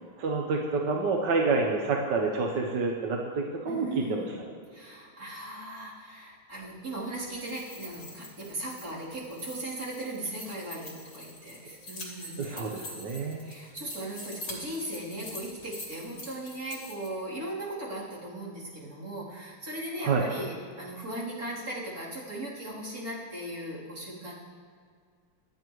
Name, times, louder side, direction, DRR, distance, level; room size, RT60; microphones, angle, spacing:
voice 1, 0.2-4.2 12.4-13.4 20.0-20.2, right 4 dB, 60° right, 0 dB, 1.6 m, -28 dB
voice 2, 3.7-4.4 4.7-12.6 13.4-24.3, right 1 dB, 40° right, -8 dB, 3.9 m, -38 dB
sound 1, 7.3-17.1, left 1 dB, 50° left, 3.4 m, -45 dB
26.5 x 9.6 x 3.1 m, 2.1 s
omnidirectional pair, 2.3 m